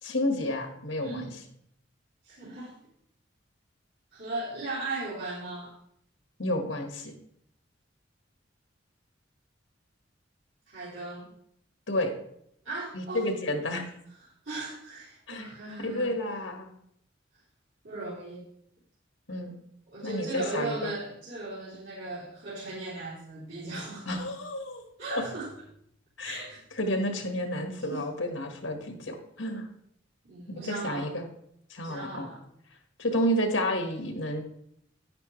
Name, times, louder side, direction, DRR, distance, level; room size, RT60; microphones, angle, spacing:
voice 1, 0.0-1.3 6.4-7.1 11.9-12.1 12.9-13.9 15.3-15.4 15.8-16.7 19.3-19.5 20.0-20.9 24.1-24.8 25.2-25.3 26.2-26.4 26.8-29.7 30.6-31.3 31.7-32.3 33.0-34.4, left 1 dB, 85° left, 5 dB, 1.7 m, -30 dB
voice 2, 1.0-1.4 2.2-2.7 4.1-5.7 10.7-11.3 12.6-13.3 14.4-16.4 17.8-18.4 19.9-24.1 25.0-25.5 26.2-26.6 27.9-28.0 30.2-31.1 31.8-32.4, right 2 dB, 80° right, -9 dB, 3.3 m, -37 dB
10.0 x 10.0 x 3.3 m, 0.72 s
head